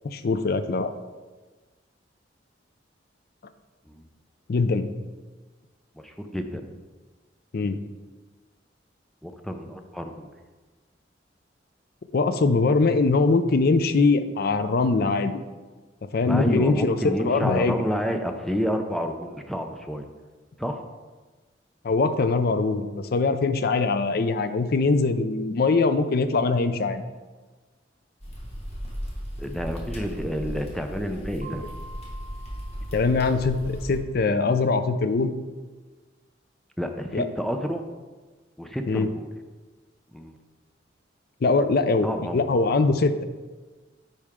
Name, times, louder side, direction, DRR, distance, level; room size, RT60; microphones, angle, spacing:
voice 1, 0.0-0.9 4.5-4.9 7.5-7.8 12.1-15.4 16.1-17.7 21.8-27.0 32.9-35.3 37.1-37.2 38.9-39.1 41.4-42.1 42.3-43.2, left 3 dB, 55° left, 10 dB, 0.5 m, -22 dB
voice 2, 6.0-6.7 9.2-10.3 16.3-20.1 20.6-20.8 29.4-31.6 36.8-37.9 38.6-39.3 40.1-40.4 42.0-42.4, equal, ahead, 5 dB, 0.5 m, -29 dB
sound 1, 28.2-34.0, equal, 35° left, 1.4 m, -36 dB
Mallet percussion, 31.4-34.0, right 3 dB, 40° right, 0.8 m, -47 dB
9.7 x 4.3 x 3.6 m, 1.3 s
head